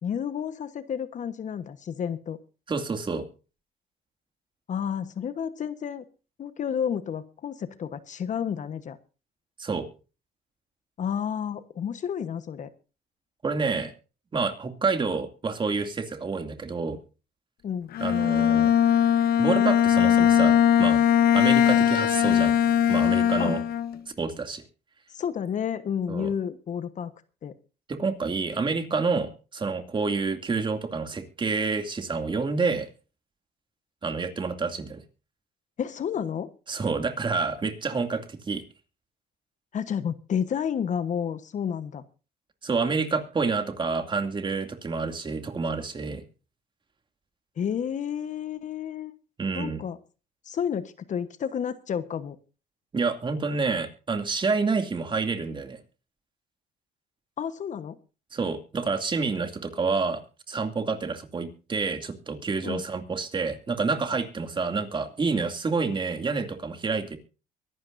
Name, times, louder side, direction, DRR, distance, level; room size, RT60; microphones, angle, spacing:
voice 1, 0.0-2.4 4.7-6.0 6.4-9.0 11.0-12.7 17.6-17.9 23.4-23.6 25.1-27.1 27.4-27.6 35.8-36.5 39.7-42.0 47.6-49.1 49.5-50.0 50.4-52.4 57.4-58.0 62.6-62.8, left 8 dB, 45° left, 13 dB, 1.2 m, -31 dB
voice 2, 2.7-3.3 9.6-9.9 13.4-13.9 14.3-17.0 18.0-18.7 19.4-21.0 21.3-22.6 22.9-23.6 24.2-24.6 26.1-26.3 27.9-32.9 34.0-35.0 36.7-38.6 42.6-46.2 49.4-49.8 52.9-55.8 58.3-60.2 60.5-67.2, right 4 dB, 30° right, 7 dB, 2.5 m, -28 dB
Bowed string instrument, 17.9-24.0, left 9 dB, 65° left, 1.3 m, -20 dB
23.5 x 12.0 x 2.6 m, 0.34 s
cardioid pair, 110°, 17 cm